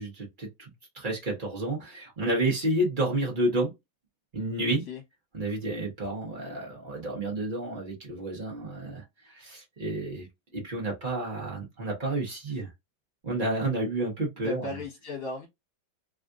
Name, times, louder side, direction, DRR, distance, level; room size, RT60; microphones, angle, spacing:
voice 1, 0.0-3.7 4.3-4.8 5.3-10.3 10.5-12.7 13.2-14.8, right 1 dB, 35° right, 0.8 m, -30 dB
voice 2, 14.4-15.5, left 2 dB, 60° left, 1.6 m, -36 dB
3.5 x 2.4 x 2.5 m
omnidirectional pair, 2.1 m